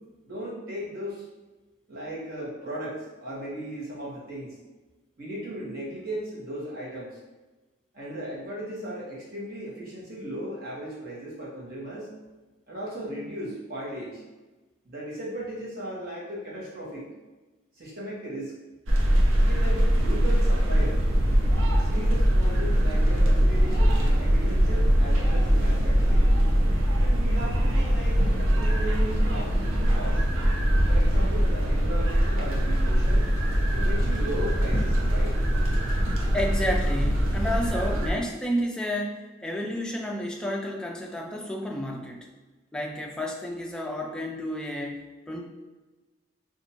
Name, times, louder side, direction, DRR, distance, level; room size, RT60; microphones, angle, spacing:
voice 1, 0.2-1.2 1.9-4.6 5.2-7.2 7.9-12.1 12.7-14.2 14.8-17.0 17.8-18.5 19.3-21.0 21.8-26.3 27.0-30.2 30.9-33.3 33.7-35.4, right 1 dB, 45° right, -6 dB, 1.2 m, -36 dB
sound 1, 18.9-38.1, equal, 85° right, 0.7 m, -22 dB
voice 2, 36.3-42.3 42.7-45.4, equal, 5° left, 0 dB, 0.3 m, -31 dB
2.7 x 2.5 x 4.2 m, 1.2 s
head